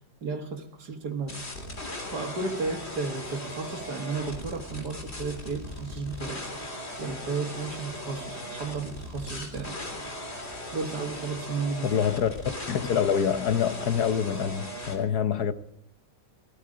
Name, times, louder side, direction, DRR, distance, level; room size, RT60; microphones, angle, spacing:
voice 1, 0.2-1.4 2.1-6.4 7.0-9.7 10.7-11.9, right 4 dB, 60° right, 2.3 m, -33 dB
sound 1, 1.3-15.0, left 1 dB, 35° left, 3.5 m, -38 dB
voice 2, 11.8-12.4 12.7-15.5, left 8 dB, 65° left, 1.4 m, -26 dB
18.5 x 15.0 x 5.1 m
omnidirectional pair, 1.9 m